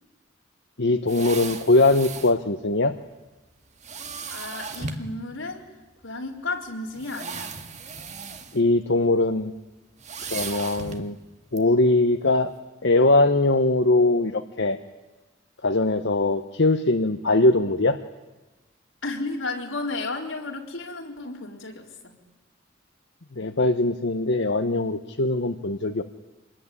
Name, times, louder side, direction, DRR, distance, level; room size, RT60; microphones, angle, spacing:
voice 1, 0.8-2.9 8.5-9.5 10.3-11.2 11.5-12.5 12.8-14.8 15.6-18.0 23.4-26.0, left 2 dB, 60° left, 8 dB, 1.0 m, -21 dB
sound 1, 1.1-2.4 3.8-5.1 6.0-6.1 6.9-8.6 8.9-9.2 10.0-11.1 11.6-11.7, right 4 dB, 35° right, 1.9 m, -36 dB
voice 2, 4.3-5.7 6.0-7.6 19.0-22.2, left 3 dB, 80° left, 1 dB, 4.2 m, -33 dB
25.0 x 21.0 x 9.8 m, 1.1 s
head